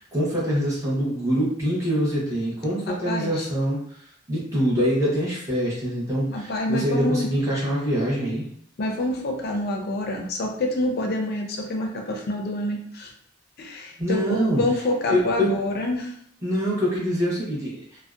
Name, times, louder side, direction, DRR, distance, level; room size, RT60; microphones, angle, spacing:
voice 1, 0.0-3.8 4.3-8.4 14.0-14.6 15.1-15.5 16.4-18.0, equal, 15° right, -7 dB, 0.9 m, -24 dB
voice 2, 2.9-3.5 6.3-7.3 8.8-13.1 13.6-16.1, left 1 dB, 55° left, 2 dB, 0.4 m, -27 dB
2.6 x 2.0 x 2.3 m, 0.67 s
head